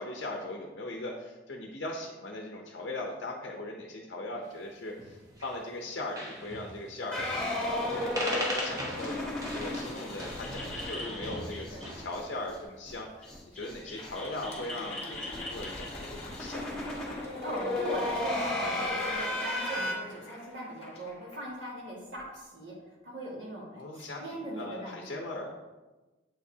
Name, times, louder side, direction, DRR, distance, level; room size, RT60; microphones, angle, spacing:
voice 1, 0.0-7.2 7.7-13.3 13.5-17.0 23.7-25.5, left 2 dB, 60° left, 1 dB, 0.6 m, -39 dB
sound 1, 5.0-5.6 5.9-6.0 6.2-6.7 7.2-7.5 7.8-12.2, equal, 20° right, 0.9 m, -38 dB
sound 2, 7.1-12.2 12.5-12.6 12.9-13.0 13.2-19.9, left 1 dB, 5° left, 1.5 m, -35 dB
voice 2, 11.1-11.9 17.4-22.7 23.0-23.7 23.9-25.4, right 1 dB, 65° right, -3 dB, 1.8 m, -40 dB
Crowd, 13.5-22.4, left 2 dB, 30° left, 1.2 m, -49 dB
7.4 x 4.9 x 2.7 m, 1.2 s
head